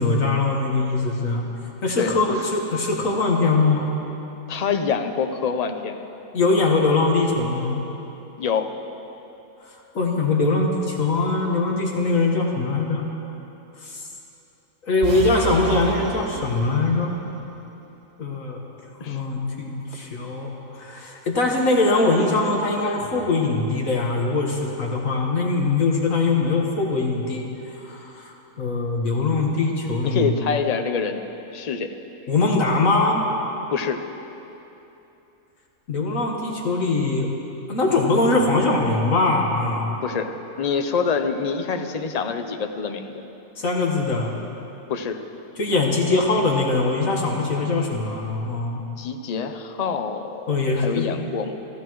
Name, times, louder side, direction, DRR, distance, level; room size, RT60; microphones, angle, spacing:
voice 1, 0.0-1.5 1.8-3.9 6.3-7.8 9.6-13.0 13.8-14.1 14.8-17.1 18.2-18.6 19.0-30.4 32.3-33.2 35.9-37.3 37.7-39.9 43.6-44.3 45.6-48.8 50.5-51.1, left 3 dB, 60° left, -1 dB, 1.8 m, -22 dB
voice 2, 4.5-6.0 8.4-8.7 19.0-19.2 30.0-31.2 31.5-31.9 33.7-34.0 40.0-40.3 40.6-43.2 44.9-45.2 49.0-51.5, left 6 dB, 45° left, 6 dB, 0.5 m, -26 dB
sound 1, 15.0-17.3, right 12 dB, 70° right, 0.9 m, -31 dB
24.5 x 14.5 x 3.1 m, 3.0 s
omnidirectional pair, 1.6 m